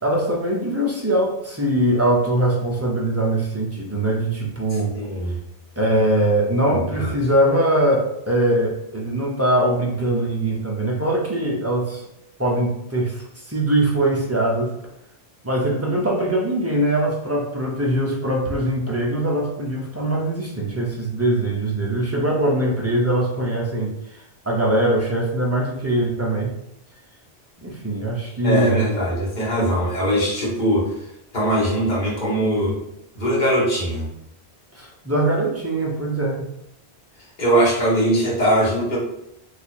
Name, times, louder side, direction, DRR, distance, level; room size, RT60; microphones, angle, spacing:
voice 1, 0.0-4.9 5.8-12.1 12.4-14.7 15.4-23.9 24.5-26.5 27.6-28.8 34.7-36.5, right 1 dB, 25° right, -2 dB, 0.3 m, -22 dB
voice 2, 4.9-5.4 6.9-7.1 28.4-30.9 31.3-32.8 33.1-34.1 37.4-39.0, right 1 dB, 45° left, -4 dB, 1.1 m, -21 dB
2.7 x 2.4 x 4.2 m, 0.80 s
omnidirectional pair, 1.1 m